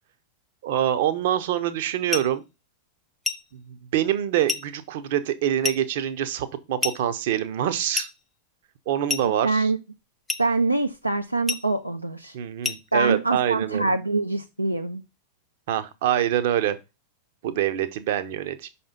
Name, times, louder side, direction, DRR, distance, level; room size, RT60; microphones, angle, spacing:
voice 1, 0.6-2.4 3.5-8.1 8.9-9.7 12.3-13.9 15.7-16.8 17.4-18.7, right 11 dB, 55° right, 0.7 m, -25 dB
sound 1, 2.1-2.4 3.2-3.5 4.5-4.7 5.6-5.9 6.8-7.1 7.9-8.2 9.1-9.4 10.3-10.5 11.5-11.7 12.6-12.9, left 4 dB, 10° left, 0.6 m, -29 dB
voice 2, 9.3-9.8 10.4-12.3 12.9-15.0, right 3 dB, 85° right, 0.4 m, -24 dB
5.5 x 4.3 x 5.1 m
figure-of-eight pair, 90°, 0 cm